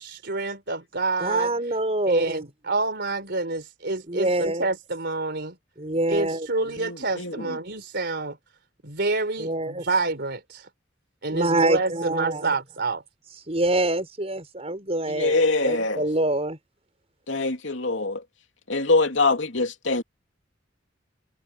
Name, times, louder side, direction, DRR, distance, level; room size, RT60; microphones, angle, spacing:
voice 1, 0.0-1.8 2.1-5.6 6.1-8.4 8.8-10.7 11.2-13.0, right 3 dB, 60° right, 4.0 m, -28 dB
voice 2, 1.2-2.4 4.1-4.6 5.8-6.5 9.4-9.8 11.3-12.5 13.5-16.6, right 2 dB, 35° right, 5.8 m, -25 dB
voice 3, 6.8-7.6 15.1-16.0 17.3-18.2 18.7-20.0, left 3 dB, 75° left, 2.9 m, -24 dB
head